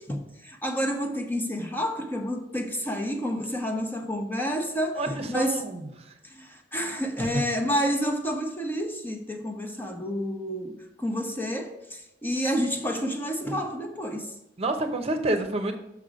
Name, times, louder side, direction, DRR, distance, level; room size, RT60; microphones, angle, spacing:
voice 1, 0.0-5.6 6.2-14.3, equal, 10° left, 4 dB, 0.8 m, -29 dB
voice 2, 5.0-6.1 7.2-7.4 14.6-15.8, right 2 dB, 35° right, 6 dB, 0.8 m, -28 dB
6.3 x 5.5 x 5.0 m, 0.86 s
head